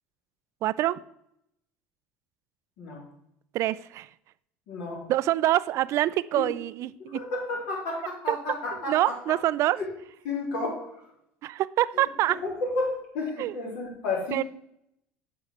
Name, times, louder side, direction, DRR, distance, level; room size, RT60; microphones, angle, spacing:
voice 1, 0.6-1.0 3.5-4.1 5.1-7.2 8.3-8.4 8.9-9.8 11.4-12.4 13.4-13.5 14.3-14.4, right 14 dB, 55° right, 17 dB, 0.4 m, -25 dB
voice 2, 4.7-5.0 7.0-9.2 9.7-9.8 10.2-10.9 12.3-14.4, left 3 dB, 70° left, -2 dB, 3.8 m, -32 dB
7.9 x 5.3 x 6.5 m, 0.79 s
supercardioid pair, 85°, 6 cm